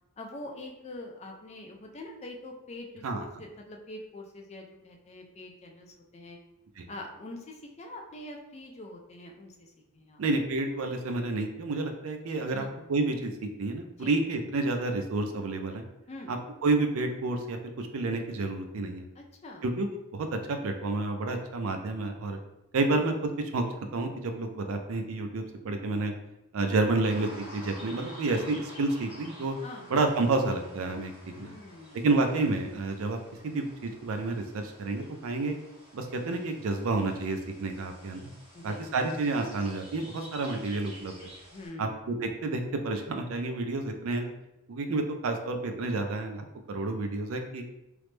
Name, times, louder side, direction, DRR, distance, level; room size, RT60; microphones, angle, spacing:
voice 1, 0.2-6.4 6.9-10.2 12.5-12.7 14.0-14.1 16.1-16.3 19.2-19.6 29.6-29.9 31.3-32.1 38.5-38.8 41.5-42.1, left 1 dB, 30° left, 2 dB, 0.4 m, -44 dB
voice 2, 10.2-15.8 16.3-16.4 16.6-19.1 19.6-22.4 22.7-23.7 23.9-26.1 26.5-29.5 29.9-31.5 31.9-33.2 33.4-35.6 35.9-38.3 38.6-41.3 41.8-44.3 44.7-47.6, right 3 dB, 75° right, 5 dB, 0.4 m, -30 dB
sound 1, 27.0-41.7, equal, 25° right, 1.0 m, -50 dB
3.1 x 2.0 x 3.1 m, 0.90 s
head